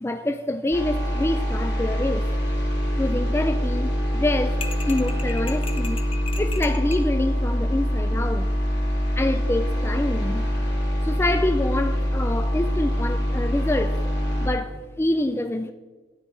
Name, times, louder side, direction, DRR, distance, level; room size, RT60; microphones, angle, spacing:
voice 1, 0.0-2.3 3.0-4.6 4.8-6.0 6.4-8.5 9.2-10.5 11.0-14.0 14.4-15.7, left 1 dB, 15° left, 0.4 m, -26 dB
sound 1, 0.7-14.5, equal, 60° left, 3.1 m, -24 dB
sound 2, 4.6-7.1, left 4 dB, 30° left, 0.7 m, -36 dB
12.5 x 9.7 x 3.9 m
head